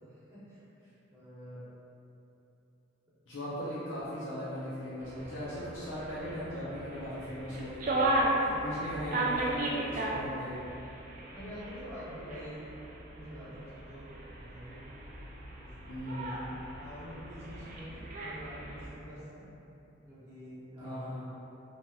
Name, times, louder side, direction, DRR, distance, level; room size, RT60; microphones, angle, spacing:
voice 1, 0.0-0.6 1.1-1.6 8.5-9.0 11.3-12.7 13.2-14.8 15.5-15.7 16.0-16.5 16.7-19.4 20.0-21.3, equal, 15° right, -12 dB, 0.8 m, -47 dB
voice 2, 3.3-8.1 8.4-10.6 15.9-16.5 20.8-21.3, equal, 75° left, -9 dB, 0.5 m, -38 dB
sound 1, 5.0-18.9, right 1 dB, 45° right, 0.3 m, -36 dB
2.8 x 2.8 x 2.2 m, 2.9 s
head